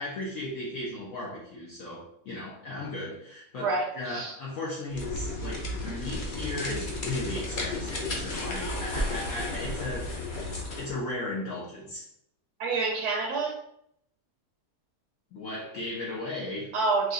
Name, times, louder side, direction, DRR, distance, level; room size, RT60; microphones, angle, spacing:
voice 1, 0.0-10.1 10.8-12.1 15.3-16.7, left 1 dB, 60° left, -5 dB, 1.1 m, -36 dB
voice 2, 3.6-4.4 12.6-13.6 16.7-17.1, right 3 dB, 90° right, 1 dB, 1.2 m, -28 dB
sound 1, 4.9-10.9, left 2 dB, 45° left, 0.6 m, -33 dB
4.8 x 3.1 x 2.5 m, 0.73 s
omnidirectional pair, 1.7 m